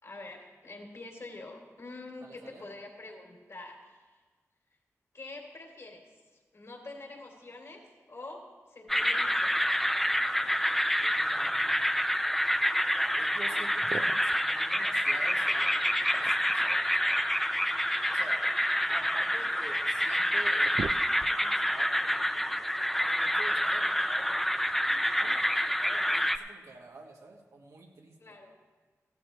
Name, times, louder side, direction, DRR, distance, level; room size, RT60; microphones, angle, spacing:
voice 1, 0.0-4.2 5.1-6.0 6.5-8.4 8.7-9.6 28.2-28.5, left 2 dB, 60° left, 0 dB, 3.0 m, -45 dB
voice 2, 2.2-2.7 11.0-11.8 12.9-17.2 18.1-18.5 18.9-22.5 23.0-28.3, right 3 dB, 90° right, -1 dB, 1.6 m, -49 dB
sound 1, 8.9-26.4, equal, 5° left, 0.5 m, -28 dB
sound 2, 13.7-14.5 15.9-16.7 18.0-19.4 20.0-20.1 20.4-21.6, right 5 dB, 65° right, 0.4 m, -41 dB
15.5 x 13.5 x 3.1 m, 1.4 s
cardioid pair, 55°, 6 cm